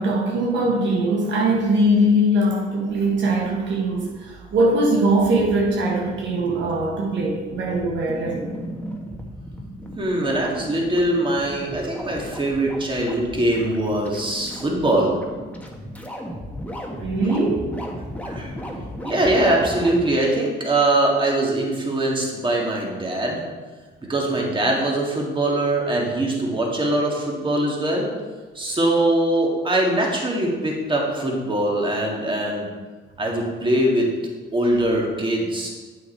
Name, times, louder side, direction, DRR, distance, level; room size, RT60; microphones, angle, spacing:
voice 1, 0.0-8.5 17.0-17.7, right 1 dB, 65° right, -2 dB, 1.3 m, -21 dB
sound 1, 3.1-20.0, equal, 5° left, 1.3 m, -36 dB
voice 2, 10.0-15.2 18.3-18.6 19.0-23.4 24.1-28.1 28.5-32.7 33.2-34.1 34.5-35.7, right 1 dB, 25° right, -1 dB, 2.0 m, -22 dB
8.5 x 6.3 x 4.4 m, 1.4 s
cardioid pair, 90°, 20 cm